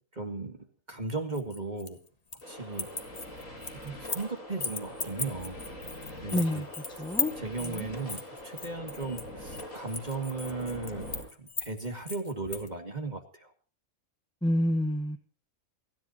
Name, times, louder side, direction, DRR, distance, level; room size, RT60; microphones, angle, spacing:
voice 1, 0.1-0.6 0.9-2.0 2.5-2.9 3.8-5.6 6.2-6.6 7.4-13.5, right 3 dB, 30° right, 5 dB, 2.4 m, -36 dB
sound 1, 1.3-2.5 2.7-4.3 4.6-12.7, left 4 dB, 30° left, 1.6 m, -37 dB
sound 2, 2.4-11.2, equal, 75° left, 7.1 m, -43 dB
voice 2, 6.3-6.7 7.0-7.3 7.6-7.9 14.4-15.2, equal, 5° left, 6 dB, 1.4 m, -28 dB
29.5 x 10.5 x 2.9 m, 0.38 s
omnidirectional pair, 1.4 m